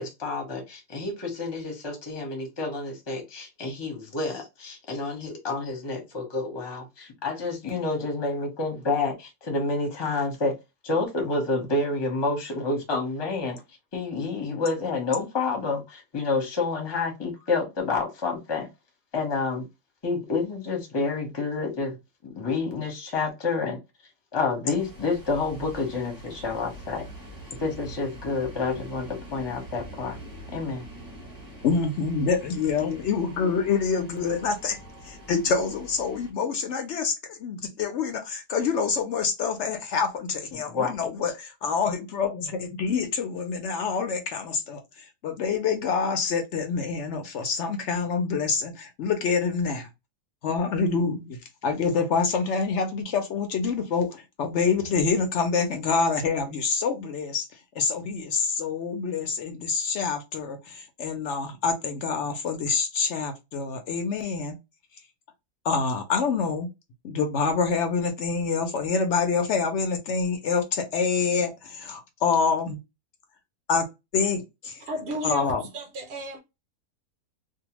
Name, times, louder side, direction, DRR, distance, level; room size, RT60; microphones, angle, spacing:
voice 1, 0.0-10.6 10.8-13.6 13.9-18.7 19.1-19.6 20.0-22.0 22.2-23.8 24.3-27.1 27.6-30.2 30.5-30.8 32.8-33.0 40.5-40.9 41.2-41.3, left 3 dB, 25° left, 0.6 m, -29 dB
sound 1, 24.8-36.3, right 1 dB, 20° right, 0.7 m, -44 dB
voice 2, 31.6-34.8 35.0-44.8 45.2-49.9 50.4-57.5 57.8-64.6 65.6-66.7 67.0-72.8 73.7-73.9 74.1-74.8 75.2-75.6, left 5 dB, 65° left, 0.7 m, -26 dB
voice 3, 74.9-76.4, right 2 dB, 65° right, 0.7 m, -34 dB
2.6 x 2.1 x 2.9 m
omnidirectional pair, 1.7 m